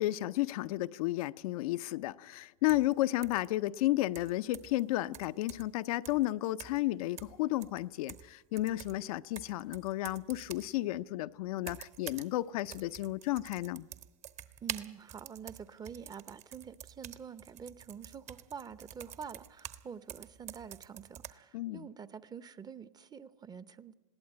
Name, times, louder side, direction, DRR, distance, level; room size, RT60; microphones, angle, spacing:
voice 1, 0.0-13.9 21.5-21.9, left 16 dB, 70° left, 0.6 m, -32 dB
sound 1, 2.7-2.9 3.2-3.5 4.1-4.8 5.1-5.8 6.0-6.2 6.6-6.9 7.2-8.3 8.6-10.7 11.6-12.3 12.6-19.8 20.1-21.3, right 9 dB, 35° right, 1.2 m, -47 dB
voice 2, 14.6-23.9, right 7 dB, 20° right, 0.8 m, -47 dB
21.0 x 16.5 x 8.8 m
hypercardioid pair, 115°, 19 cm